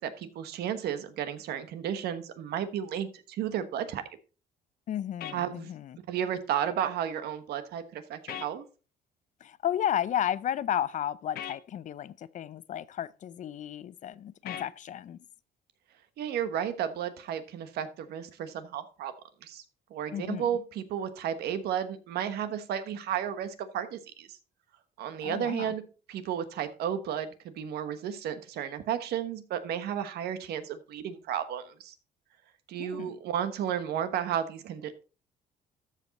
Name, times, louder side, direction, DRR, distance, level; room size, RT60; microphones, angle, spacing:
voice 1, 0.0-4.0 5.3-5.7 6.1-8.6 16.2-19.1 19.4-19.6 19.9-24.4 25.0-25.8 26.1-31.9 32.7-35.0, right 9 dB, 75° right, 1.2 m, -33 dB
voice 2, 4.9-6.0 9.4-15.2 20.1-20.5 25.2-25.7 32.8-33.2, left 10 dB, 50° left, 0.5 m, -33 dB
sound 1, 5.2-5.4 8.3-8.5 11.4-11.6 14.5-14.7, left 10 dB, 65° left, 0.9 m, -38 dB
13.5 x 5.0 x 4.0 m
cardioid pair, 110°, 17 cm